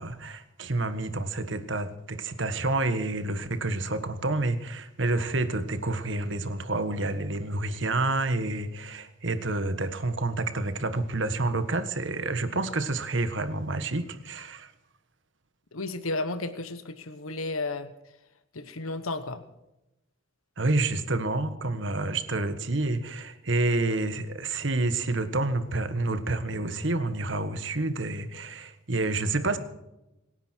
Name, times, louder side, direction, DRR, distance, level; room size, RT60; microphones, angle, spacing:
voice 1, 0.0-14.7 20.6-29.6, right 2 dB, 60° right, 10 dB, 1.5 m, -29 dB
voice 2, 15.7-17.9 18.5-19.4, left 2 dB, 85° left, 11 dB, 1.2 m, -33 dB
26.0 x 10.5 x 4.5 m, 0.94 s
head